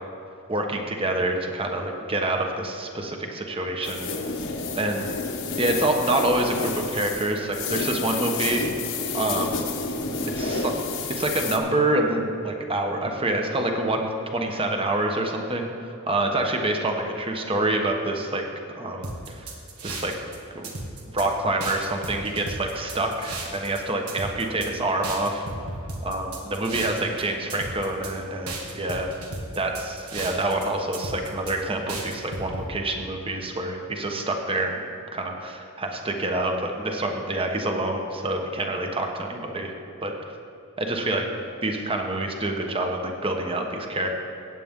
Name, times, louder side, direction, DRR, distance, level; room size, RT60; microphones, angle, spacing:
voice 1, 0.5-4.1 4.7-5.1 5.6-8.6 9.1-9.6 10.3-10.7 11.1-15.7 16.1-18.4 18.7-19.4 19.8-20.1 20.5-20.7 21.1-25.5 26.0-29.1 29.6-34.8 35.1-39.7 40.0-40.1 40.8-41.3 41.6-44.2, right 2 dB, 25° right, 3 dB, 1.1 m, -27 dB
sound 1, 3.8-11.6, left 4 dB, 60° left, 1.2 m, -30 dB
sound 2, 19.0-20.4 20.6-21.3 21.6-23.8 24.1-24.7 25.0-27.2 27.5-28.1 28.5-30.6 30.9-31.5 31.9-32.6, right 3 dB, 80° right, 1.7 m, -35 dB
15.5 x 9.1 x 3.7 m, 2.9 s
head